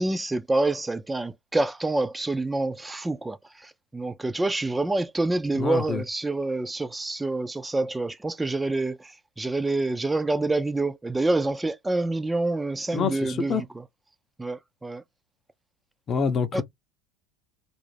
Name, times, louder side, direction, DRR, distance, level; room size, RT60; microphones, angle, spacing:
voice 1, 0.0-3.4 3.6-9.1 9.4-13.6 14.4-15.0 16.5-16.6, right 2 dB, 10° right, 0.4 m, -27 dB
voice 2, 5.5-6.0 12.9-13.6 16.1-16.6, left 6 dB, 35° left, 0.6 m, -26 dB
2.4 x 2.0 x 3.2 m
supercardioid pair, 100°, 0 cm